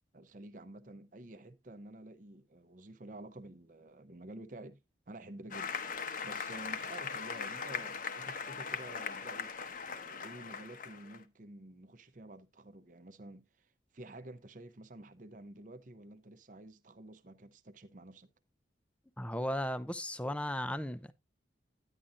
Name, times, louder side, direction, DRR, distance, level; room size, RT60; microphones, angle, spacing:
voice 1, 0.1-4.8 5.1-5.8 6.2-9.5 9.9-18.3, right 1 dB, 45° right, 0.7 m, -50 dB
Applause, 5.5-11.2, left 6 dB, 45° left, 0.8 m, -40 dB
voice 2, 19.2-21.1, left 1 dB, 5° left, 0.5 m, -36 dB
10.0 x 9.9 x 2.5 m
head